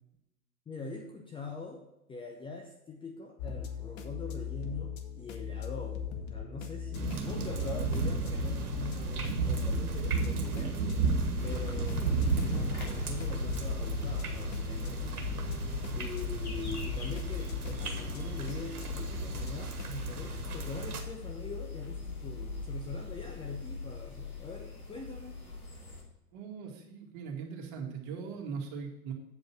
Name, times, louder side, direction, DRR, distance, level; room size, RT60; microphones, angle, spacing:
voice 1, 0.7-10.8 11.4-15.2 15.9-25.4, left 3 dB, 10° left, 2 dB, 0.6 m, -43 dB
sound 1, 3.4-20.1, left 7 dB, 45° left, 1.1 m, -40 dB
sound 2, 6.9-21.0, right 4 dB, 80° right, 1.5 m, -34 dB
sound 3, 11.4-26.0, left 4 dB, 75° left, 2.7 m, -39 dB
voice 2, 26.3-29.1, right 6 dB, 40° right, 1 dB, 2.1 m, -40 dB
8.4 x 5.1 x 5.9 m, 0.88 s
figure-of-eight pair, 95°, 44 cm